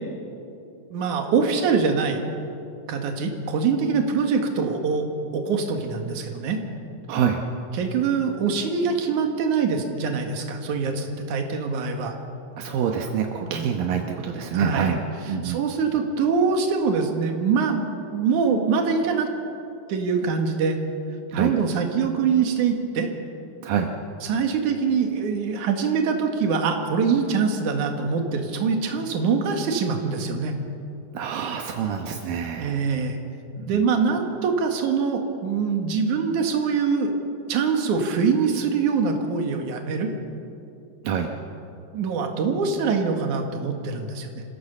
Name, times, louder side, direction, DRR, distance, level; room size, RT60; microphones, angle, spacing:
voice 1, 0.9-2.2 2.9-5.1 5.3-6.6 7.7-12.2 13.5-13.7 14.3-14.9 15.4-17.8 18.1-19.3 19.9-20.8 21.3-23.1 24.2-30.5 32.6-33.2 33.7-37.1 37.5-40.1 41.9-44.4, right 5 dB, 65° right, 3 dB, 3.2 m, -24 dB
voice 2, 7.1-7.4 12.6-15.0 15.3-15.6 21.3-21.5 23.6-23.9 31.1-32.8 33.6-33.8 41.0-41.3, right 7 dB, 80° right, 3 dB, 2.8 m, -26 dB
27.0 x 16.0 x 7.2 m, 2.6 s
omnidirectional pair, 4.0 m